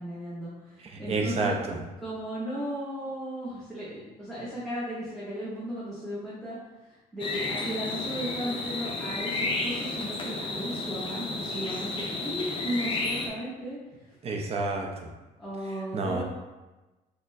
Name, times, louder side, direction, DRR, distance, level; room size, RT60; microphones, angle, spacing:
voice 1, 0.0-1.5 2.0-6.6 6.9-13.8 15.4-16.2, right 1 dB, ahead, -10 dB, 0.8 m, -35 dB
voice 2, 0.8-1.8 14.2-15.1 15.9-16.2, right 3 dB, 35° right, 1 dB, 0.5 m, -29 dB
sound 1, 7.2-13.3, left 3 dB, 30° left, 0.5 m, -32 dB
4.1 x 2.1 x 2.6 m, 1.1 s
cardioid pair, 110°, 17 cm